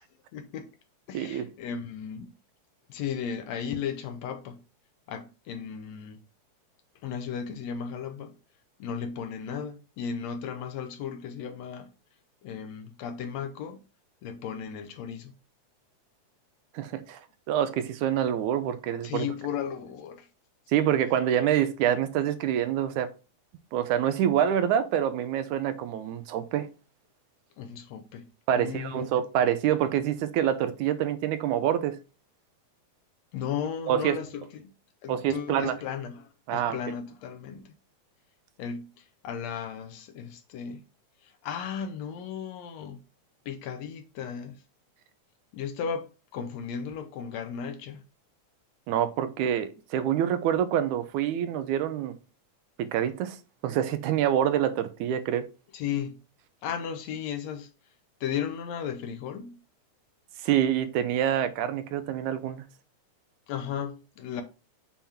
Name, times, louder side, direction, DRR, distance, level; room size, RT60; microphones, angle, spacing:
voice 1, 0.3-0.7 1.1-2.4 2.9-4.6 5.1-6.2 7.0-8.4 8.8-11.9 12.4-13.8 14.2-15.3 19.0-20.3 27.6-29.1 33.3-34.7 35.0-37.7 38.6-40.8 41.2-43.0 43.4-44.6 45.5-48.0 55.7-56.2 56.6-57.7 58.2-59.6 63.5-64.4, left 7 dB, 75° left, 1.8 m, -35 dB
voice 2, 1.1-1.5 16.7-17.2 17.5-19.3 20.7-23.1 23.7-26.7 28.5-32.0 33.9-34.2 35.1-35.8 36.5-36.8 48.9-52.2 52.8-53.4 53.6-55.5 60.4-62.6, right 10 dB, 85° right, 2.1 m, -26 dB
7.3 x 3.5 x 4.2 m
omnidirectional pair, 3.4 m